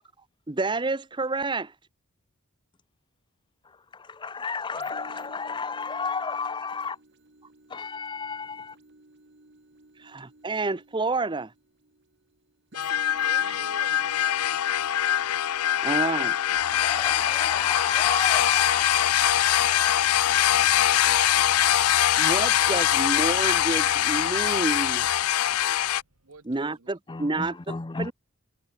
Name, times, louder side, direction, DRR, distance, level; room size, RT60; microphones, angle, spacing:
voice 1, 0.5-1.7 10.0-11.5 13.6-13.7 15.8-16.4 22.2-25.1 26.4-28.1, right 3 dB, 20° right, 0.7 m, -29 dB
voice 2, 3.9-7.0 7.7-8.8 16.5-20.1 27.1-28.1, left 5 dB, 20° left, 0.5 m, -33 dB
sound 1, 4.7-22.3 22.8-22.9, right 2 dB, 50° right, 1.9 m, -55 dB
sound 2, 12.7-26.0, left 11 dB, 75° left, 0.5 m, -23 dB
voice 3, 13.1-14.5 18.8-18.9 26.2-26.9, right 5 dB, 65° right, 1.3 m, -47 dB
sound 3, 20.9-26.4, right 2 dB, 85° right, 4.3 m, -59 dB
head